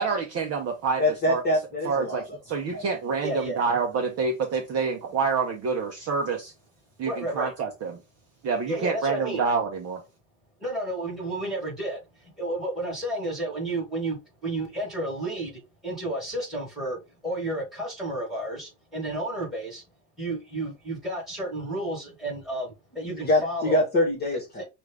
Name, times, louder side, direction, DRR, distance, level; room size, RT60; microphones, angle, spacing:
voice 1, 0.0-1.0 1.3-1.4 1.8-6.5 7.0-8.0 8.4-10.0, right 5 dB, 30° right, 0.7 m, -27 dB
voice 2, 1.0-2.4 2.7-2.9 23.0-24.6, left 1 dB, 20° left, 1.3 m, -25 dB
voice 3, 3.2-3.6 7.0-7.5 8.7-9.4 10.6-19.8 20.2-23.8 24.6-24.7, right 1 dB, ahead, 2.7 m, -32 dB
6.2 x 2.5 x 3.3 m
cardioid pair, 150°, 49 cm